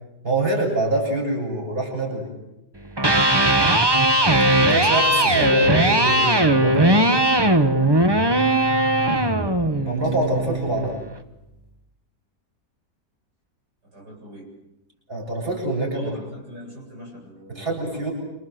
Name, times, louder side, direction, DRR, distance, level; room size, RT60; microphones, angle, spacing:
voice 1, 0.2-2.3 4.6-7.1 9.8-11.0 15.1-16.1 17.5-18.1, right 2 dB, 35° right, -1 dB, 7.5 m, -25 dB
Electric guitar, 2.9-11.0, right 1 dB, 15° right, 1.2 m, -18 dB
voice 2, 4.1-4.5 13.9-14.5 15.9-18.0, right 1 dB, 75° right, -2 dB, 8.6 m, -41 dB
27.5 x 26.5 x 7.9 m, 0.91 s
omnidirectional pair, 1.8 m